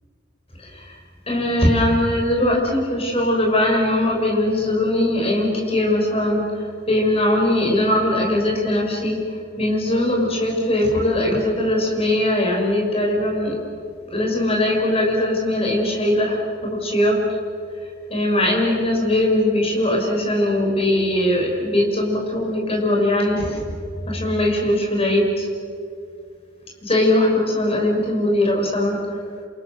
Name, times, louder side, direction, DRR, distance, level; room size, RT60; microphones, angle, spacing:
voice 1, 0.6-0.9 1.3-9.2 9.5-13.6 14.1-17.2 18.1-23.6 24.1-25.5 26.8-29.0, left 1 dB, 30° left, 0 dB, 6.3 m, -20 dB
29.0 x 27.5 x 6.7 m, 2.3 s
head